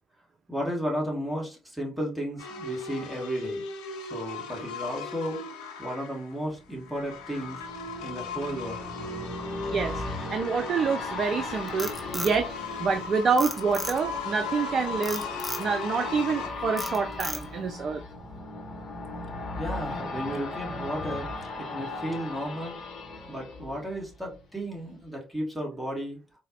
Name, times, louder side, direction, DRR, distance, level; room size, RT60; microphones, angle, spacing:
voice 1, 0.5-3.6 4.1-5.4 5.8-7.6 8.0-8.9 19.6-22.8 23.3-26.2, equal, 5° right, 1.2 m, -34 dB
sound 1, 2.4-16.5, left 4 dB, 75° left, 0.5 m, -38 dB
sound 2, 6.6-24.4 24.8-24.9, left 3 dB, 50° left, 0.9 m, -37 dB
voice 2, 9.7-12.5 12.8-15.3 15.6-18.0, right 5 dB, 45° right, 0.3 m, -27 dB
Frog, 11.5-13.0 13.4-14.3 15.0-15.7 16.2-16.4 16.8-17.7, left 1 dB, 10° left, 0.8 m, -35 dB
3.9 x 2.0 x 2.5 m
figure-of-eight pair, 45°, 0 cm